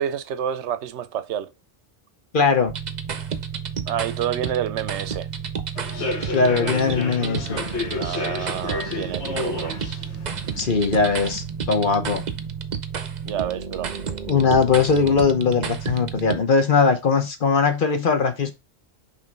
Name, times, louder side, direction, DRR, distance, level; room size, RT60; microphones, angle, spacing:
voice 1, 0.0-1.5 3.9-5.3 8.0-9.8 13.3-14.0, right 10 dB, 90° right, 0.9 m, -28 dB
voice 2, 2.3-2.7 6.3-7.5 10.6-12.2 14.3-18.5, left 5 dB, 50° left, 1.1 m, -20 dB
sound 1, 2.7-16.4, right 6 dB, 45° right, 0.8 m, -31 dB
Human voice / Subway metro underground, 5.8-11.3, left 3 dB, 75° left, 1.5 m, -31 dB
5.5 x 3.5 x 5.2 m
omnidirectional pair, 1.1 m